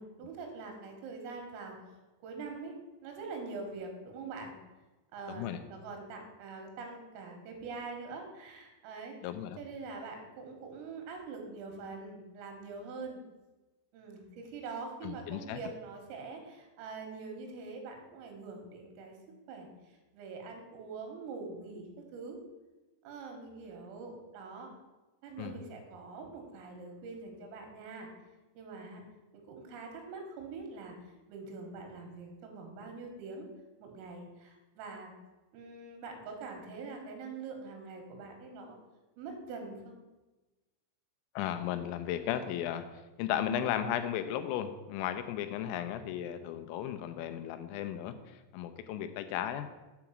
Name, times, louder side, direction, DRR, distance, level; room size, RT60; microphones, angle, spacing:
voice 1, 0.0-1.8 2.2-2.8 3.0-4.6 5.1-9.2 9.6-13.2 13.9-19.2 19.5-19.7 20.1-22.4 23.1-24.7 25.2-28.1 28.6-29.0 29.5-31.0 31.3-33.5 33.8-35.1 35.5-38.8 39.2-40.0, right 4 dB, 85° right, 3 dB, 4.1 m, -44 dB
voice 2, 5.3-5.6 9.2-9.6 15.0-15.6 25.4-25.6 41.4-42.9 43.2-49.7, left 10 dB, 90° left, 9 dB, 3.4 m, -35 dB
8.0 x 4.9 x 7.3 m, 1.1 s
omnidirectional pair, 5.8 m